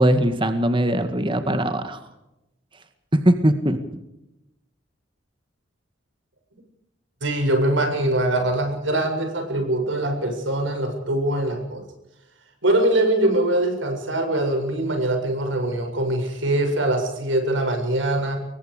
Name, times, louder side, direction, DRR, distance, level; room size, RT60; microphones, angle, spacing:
voice 1, 0.0-2.0 3.1-3.8, right 1 dB, 25° right, 8 dB, 1.9 m, -20 dB
voice 2, 7.2-11.8 12.6-18.4, right 1 dB, 80° right, 5 dB, 7.5 m, -23 dB
29.0 x 23.0 x 5.1 m, 0.89 s
head